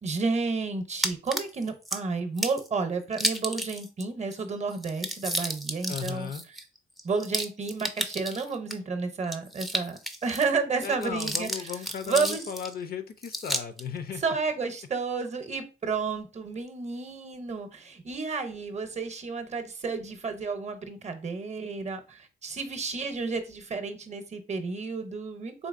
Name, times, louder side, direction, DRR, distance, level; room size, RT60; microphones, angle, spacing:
voice 1, 0.0-6.3 7.0-11.5 12.1-12.4 14.2-25.7, right 4 dB, 35° right, 0.7 m, -31 dB
sound 1, 1.0-2.0 2.4-2.7 3.1-4.0 4.3-4.4 4.7-8.7 9.2-10.5 10.8-12.7 13.2-13.8, equal, ahead, 0.4 m, -32 dB
voice 2, 5.9-6.4 10.8-14.2, left 7 dB, 50° left, 0.5 m, -36 dB
3.8 x 2.9 x 2.5 m
cardioid pair, 90°, 20 cm